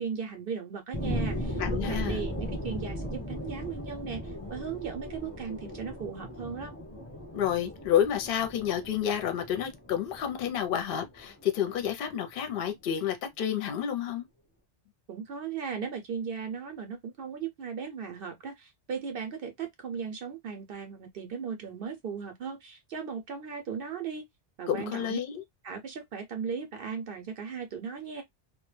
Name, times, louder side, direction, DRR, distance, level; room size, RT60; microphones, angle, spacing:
voice 1, 0.0-1.6 1.9-6.7 15.1-24.2 24.6-25.2 25.6-28.2, right 6 dB, 60° right, 0.7 m, -37 dB
sound 1, 0.9-11.9 12.4-12.5, equal, 15° left, 0.9 m, -37 dB
voice 2, 1.6-2.2 7.3-14.3 24.7-25.4, left 9 dB, 60° left, 0.7 m, -30 dB
2.2 x 2.1 x 3.1 m
omnidirectional pair, 1.2 m